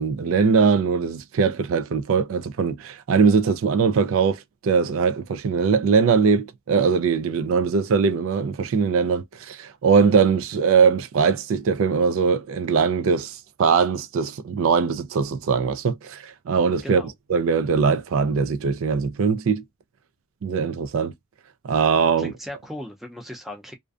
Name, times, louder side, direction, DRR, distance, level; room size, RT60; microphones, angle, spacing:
voice 1, 0.0-17.0 17.3-19.6 20.4-21.1 21.6-22.3, right 5 dB, 65° right, 0.3 m, -21 dB
voice 2, 22.2-23.7, left 1 dB, ahead, 0.5 m, -37 dB
2.5 x 2.1 x 2.4 m
head